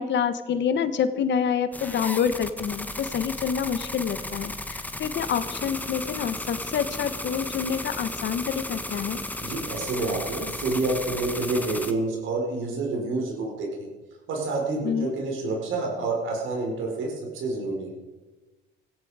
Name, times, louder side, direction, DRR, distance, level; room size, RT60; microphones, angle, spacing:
voice 1, 0.0-9.2 14.8-15.1, left 7 dB, 65° left, 11 dB, 1.2 m, -27 dB
sound 1, 1.7-11.9, left 1 dB, 10° left, 1.2 m, -35 dB
voice 2, 9.4-13.9 14.3-17.9, right 3 dB, 85° right, 0 dB, 4.8 m, -28 dB
17.0 x 15.5 x 5.0 m, 1.2 s
cardioid pair, 90°, 20 cm